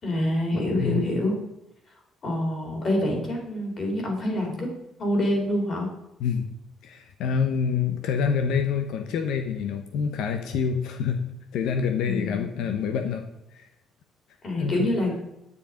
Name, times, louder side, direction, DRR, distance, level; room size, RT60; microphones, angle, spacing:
voice 1, 0.0-1.3 2.2-4.7 5.0-5.9 12.0-12.7 14.4-15.2, left 1 dB, 35° left, 1 dB, 4.0 m, -26 dB
voice 2, 6.8-11.2 11.5-13.2 13.5-13.7 14.6-14.9, left 6 dB, 90° left, 6 dB, 1.1 m, -26 dB
10.0 x 9.9 x 5.2 m, 0.87 s
cardioid pair, 155°, 0 cm